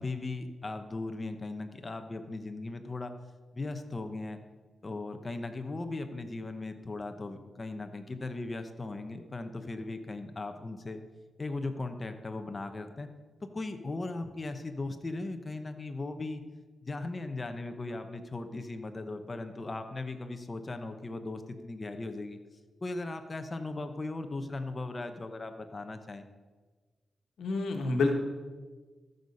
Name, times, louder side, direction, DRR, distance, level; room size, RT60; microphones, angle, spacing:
voice 1, 0.0-3.1 3.5-4.4 4.8-11.0 11.4-13.1 13.5-16.4 16.8-22.4 22.8-26.2, left 2 dB, 30° left, 7 dB, 0.9 m, -38 dB
voice 2, 27.4-28.1, left 3 dB, 90° left, 3 dB, 1.3 m, -28 dB
13.5 x 6.6 x 5.5 m, 1.4 s
cardioid pair, 100°, 0 cm